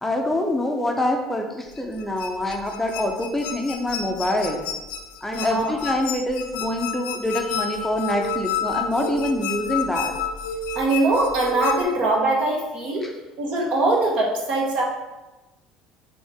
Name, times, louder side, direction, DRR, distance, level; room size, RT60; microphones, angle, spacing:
voice 1, 0.0-4.6 5.2-10.1, left 1 dB, 10° left, 2 dB, 0.6 m, -25 dB
sound 1, 1.7-11.8, left 5 dB, 65° left, 0.5 m, -30 dB
voice 2, 5.3-5.8 10.7-13.1 13.4-14.8, right 2 dB, 55° right, -1 dB, 1.2 m, -22 dB
5.2 x 2.8 x 3.5 m, 1.0 s
hypercardioid pair, 65°, 2 cm